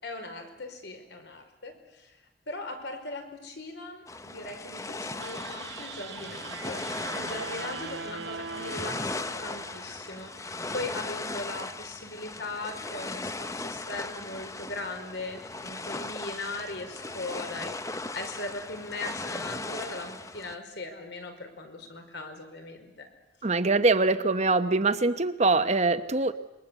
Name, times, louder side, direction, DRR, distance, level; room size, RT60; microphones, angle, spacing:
voice 1, 0.0-2.2 2.5-23.1, left 2 dB, 65° left, 5 dB, 5.0 m, -39 dB
sound 1, 4.1-20.6, left 2 dB, 15° left, 0.9 m, -38 dB
sound 2, 5.2-10.5, right 5 dB, 75° right, 1.1 m, -41 dB
voice 2, 23.4-26.3, right 3 dB, 40° right, 10 dB, 1.0 m, -23 dB
27.0 x 23.5 x 8.3 m, 1.0 s
head